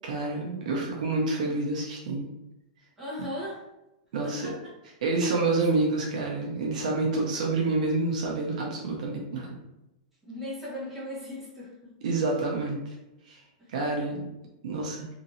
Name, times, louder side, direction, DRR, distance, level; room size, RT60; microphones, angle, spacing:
voice 1, 0.0-2.3 4.1-4.4 5.0-9.5 12.0-12.8 13.3-13.4 13.7-14.2 14.6-15.0, right 3 dB, 65° right, -1 dB, 0.7 m, -28 dB
voice 2, 3.0-3.6 4.2-4.7 10.2-11.9 13.6-13.7, left 1 dB, 5° right, -10 dB, 1.1 m, -38 dB
2.9 x 2.6 x 2.6 m, 0.94 s
supercardioid pair, 170°, 4 cm